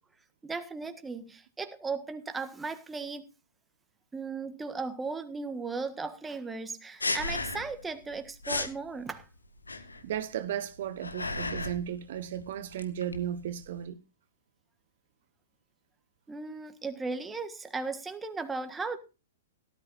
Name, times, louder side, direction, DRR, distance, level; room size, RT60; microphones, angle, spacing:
voice 1, 0.4-3.2 4.1-9.3 16.3-19.0, right 4 dB, 10° right, 1.6 m, -36 dB
sound 1, 7.0-7.8 8.1-8.2 8.4-8.8 9.6-10.2 10.7-11.9 12.1-13.8, left 2 dB, 85° left, 1.7 m, -34 dB
voice 2, 10.0-14.0, right 10 dB, 55° right, 1.2 m, -35 dB
18.0 x 13.0 x 2.6 m
figure-of-eight pair, 110°, 0 cm